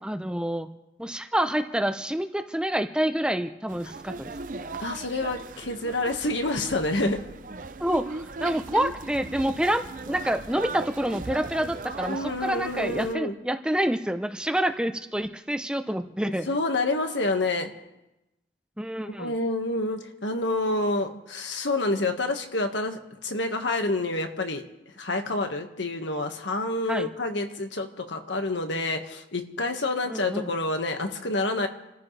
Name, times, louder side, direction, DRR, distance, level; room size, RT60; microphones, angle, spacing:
voice 1, 0.0-0.7 1.0-4.3 7.8-16.5 18.8-19.3 26.9-27.1 30.1-30.5, right 1 dB, 5° right, 7 dB, 0.7 m, -28 dB
sound 1, 3.7-13.1, right 3 dB, 45° right, 0.5 m, -38 dB
voice 2, 4.8-7.2 12.1-13.3 16.5-17.7 19.2-24.6 25.0-31.7, left 2 dB, 90° left, 5 dB, 1.7 m, -28 dB
28.5 x 14.0 x 3.3 m, 0.95 s
head